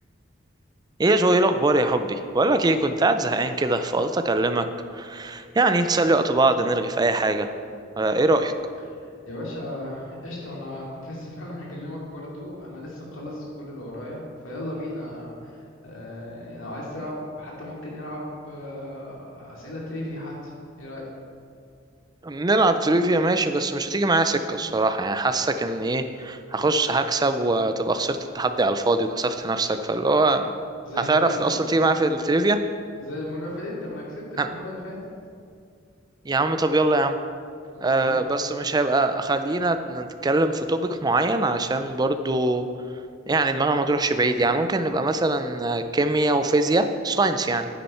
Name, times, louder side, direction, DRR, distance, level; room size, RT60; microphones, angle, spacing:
voice 1, 1.0-4.7 4.9-7.5 8.0-8.5 22.2-30.5 31.1-32.6 34.4-34.5 36.2-37.2 37.8-42.7 43.3-47.7, right 2 dB, 20° right, 9 dB, 0.4 m, -22 dB
voice 2, 8.9-21.0 30.8-31.6 33.0-35.0 37.7-38.2, left 1 dB, 85° left, -4 dB, 2.6 m, -36 dB
10.0 x 8.6 x 4.3 m, 2.3 s
head